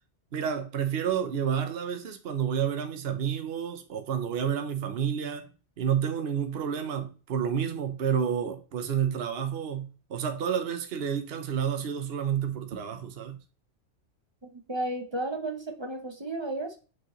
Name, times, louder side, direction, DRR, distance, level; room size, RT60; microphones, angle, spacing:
voice 1, 0.3-5.5 5.8-13.4, right 8 dB, 60° right, 1.0 m, -30 dB
voice 2, 14.5-16.8, right 2 dB, 25° right, 0.7 m, -33 dB
6.3 x 5.2 x 3.1 m
omnidirectional pair, 1.2 m